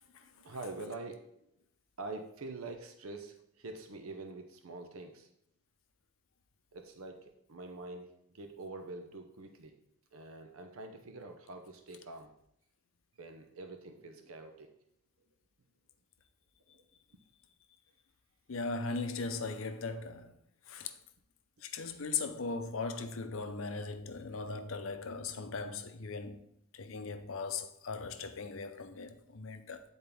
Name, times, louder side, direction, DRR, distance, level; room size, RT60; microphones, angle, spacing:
voice 1, 0.0-1.5 2.0-5.3 6.7-9.8 10.1-12.3 13.2-14.7 16.7-16.8 24.3-24.5, right 2 dB, 80° right, 0.7 m, -46 dB
voice 2, 18.5-20.3 20.7-20.9 21.6-26.4 26.7-29.8, left 4 dB, 70° left, 0.6 m, -38 dB
8.6 x 4.2 x 3.5 m
head